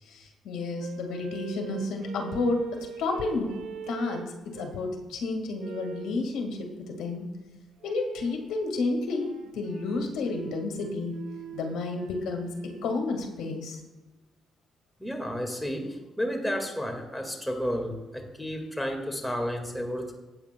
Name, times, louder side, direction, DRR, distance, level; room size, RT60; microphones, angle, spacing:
voice 1, 0.1-3.5 3.9-6.6 6.9-7.3 7.8-11.2 11.5-12.5 12.8-13.8, left 3 dB, 85° left, 3 dB, 1.6 m, -31 dB
sound 1, 0.8-5.0 5.6-6.2 7.8-8.5 9.0-13.0, right 8 dB, 85° right, 0.9 m, -43 dB
voice 2, 15.0-20.1, equal, 5° left, 3 dB, 1.7 m, -32 dB
15.0 x 8.5 x 2.2 m, 1.2 s
cardioid pair, 90°, 0 cm